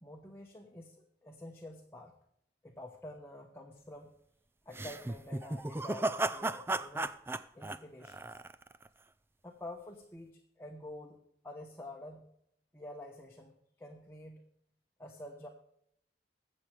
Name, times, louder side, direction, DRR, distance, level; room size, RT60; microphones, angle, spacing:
voice 1, 0.0-2.1 2.6-4.2 4.7-7.1 7.5-8.3 9.4-11.2 11.4-12.3 12.7-14.4 15.0-15.5, left 1 dB, 15° left, 0 dB, 1.1 m, -48 dB
sound 1, 4.7-8.9, right 2 dB, 15° right, 0.4 m, -35 dB
22.0 x 7.5 x 3.3 m, 0.73 s
head